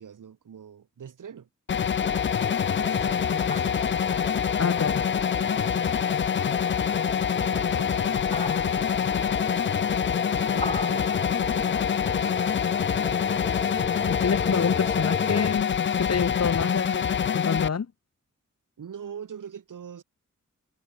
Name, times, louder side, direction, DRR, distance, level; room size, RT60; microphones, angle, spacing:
voice 1, 0.0-1.5 2.8-3.9 5.2-6.0 7.4-9.4 10.4-12.4 14.5-14.8 18.8-20.0, right 8 dB, 80° right, 2.8 m, -43 dB
sound 1, 1.7-17.7, left 8 dB, 40° left, 0.4 m, -25 dB
sound 2, 2.0-15.5, left 2 dB, 20° left, 1.8 m, -36 dB
voice 2, 4.6-5.0 14.1-15.7 16.0-17.9, left 6 dB, 55° left, 1.4 m, -27 dB
cardioid pair, 50°, 31 cm